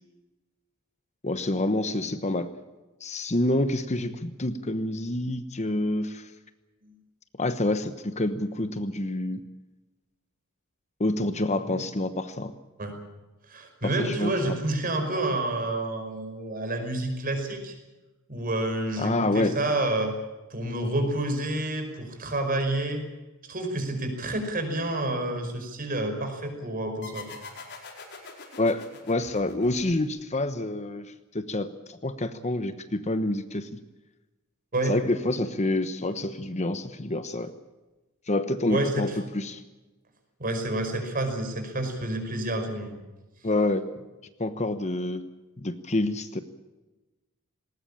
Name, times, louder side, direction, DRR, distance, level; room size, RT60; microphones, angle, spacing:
voice 1, 1.2-2.5 3.0-6.2 7.4-9.4 11.0-12.5 13.8-14.6 19.0-19.6 28.6-31.1 31.3-33.7 34.9-37.5 38.3-39.1 39.3-39.6 43.4-43.8 44.4-45.2 45.6-46.4, left 2 dB, 30° left, 11 dB, 1.1 m, -27 dB
voice 2, 13.5-17.8 18.3-20.1 20.5-23.0 23.5-27.4 34.7-34.9 38.7-39.2 40.4-42.9, right 1 dB, 40° right, 5 dB, 5.4 m, -29 dB
sound 1, 27.0-30.3, left 4 dB, 55° left, 4.9 m, -44 dB
20.0 x 19.0 x 8.8 m, 1.1 s
head